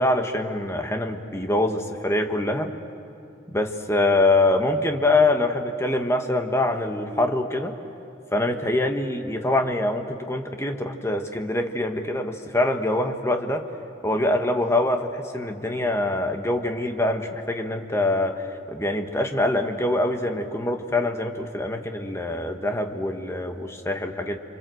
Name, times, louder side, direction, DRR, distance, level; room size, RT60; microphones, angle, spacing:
voice 1, 0.0-2.7 3.5-7.7 8.3-13.7 14.0-24.4, left 2 dB, 15° left, 5 dB, 1.4 m, -24 dB
30.0 x 25.5 x 7.8 m, 2.6 s
head